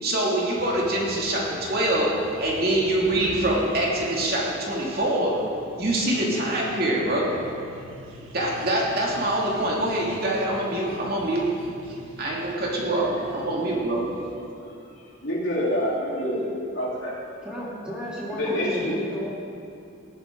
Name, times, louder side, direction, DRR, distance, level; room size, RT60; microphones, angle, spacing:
voice 1, 0.0-5.4 5.8-7.3 8.3-11.5 12.2-14.1, right 1 dB, 50° right, -4 dB, 2.6 m, -24 dB
sound 1, 0.6-14.4, equal, 80° right, 1.4 m, -44 dB
voice 2, 14.5-17.2 18.3-18.9, left 1 dB, 75° left, -6 dB, 3.6 m, -28 dB
voice 3, 17.4-19.3, equal, 5° right, -7 dB, 2.9 m, -33 dB
19.5 x 11.0 x 3.9 m, 2.5 s
head